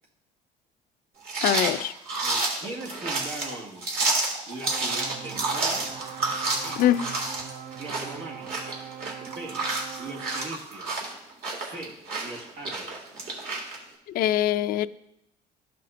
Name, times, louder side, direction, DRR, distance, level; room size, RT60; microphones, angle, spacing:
sound 1, 1.2-13.8, right 3 dB, 65° right, 2.0 m, -30 dB
voice 1, 1.4-1.9 6.8-7.0 14.1-14.9, left 12 dB, 60° left, 14 dB, 0.4 m, -23 dB
voice 2, 2.2-3.9 4.5-5.9 6.6-6.9 7.8-8.8 9.2-9.7 10.0-11.1 11.6-13.1, right 2 dB, 80° right, -1 dB, 2.0 m, -40 dB
sound 2, 4.7-10.5, right 9 dB, 45° right, 0.5 m, -42 dB
13.0 x 5.7 x 2.5 m, 0.80 s
cardioid pair, 110°, 17 cm